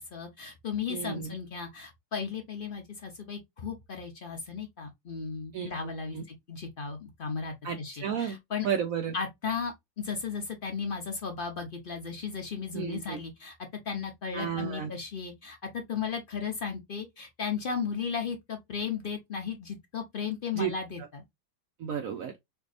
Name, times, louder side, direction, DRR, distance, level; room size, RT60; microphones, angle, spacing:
voice 1, 0.0-8.7 9.1-13.6 13.8-21.2, left 6 dB, 80° left, 0.4 m, -35 dB
voice 2, 0.9-1.3 5.5-5.7 6.1-6.2 7.6-8.4 8.6-9.1 12.7-13.2 14.3-14.9 20.5-20.7 21.8-22.3, right 8 dB, 75° right, 0.8 m, -32 dB
4.4 x 2.7 x 2.4 m
omnidirectional pair, 2.1 m